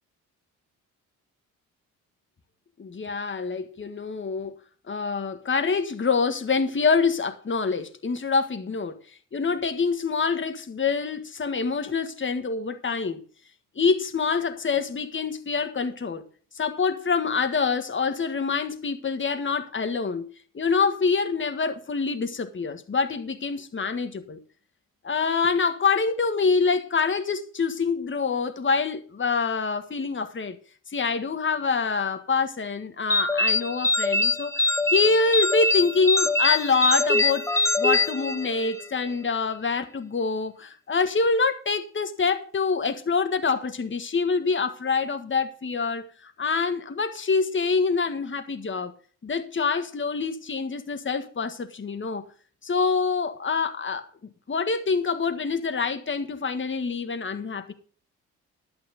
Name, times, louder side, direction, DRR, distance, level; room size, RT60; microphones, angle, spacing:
voice 1, 2.8-4.5 4.9-9.0 9.3-13.2 13.8-16.2 16.5-20.3 20.5-24.4 25.0-30.6 30.9-37.4 37.8-48.9 49.2-52.2 52.6-54.1 54.5-57.7, left 4 dB, 35° left, 1.6 m, -26 dB
sound 1, 33.1-38.9, left 2 dB, 10° left, 1.0 m, -23 dB
11.0 x 9.2 x 5.1 m
supercardioid pair, 50°, 35 cm